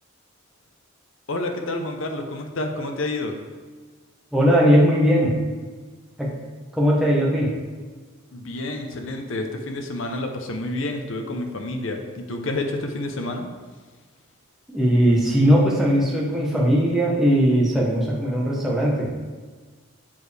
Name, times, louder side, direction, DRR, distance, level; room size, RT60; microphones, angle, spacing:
voice 1, 1.3-3.3 8.3-13.5, left 2 dB, 65° left, 4 dB, 0.7 m, -29 dB
voice 2, 4.3-5.4 6.2-6.4 6.7-7.6 14.7-19.1, equal, ahead, -5 dB, 0.9 m, -19 dB
7.1 x 4.6 x 3.3 m, 1.5 s
head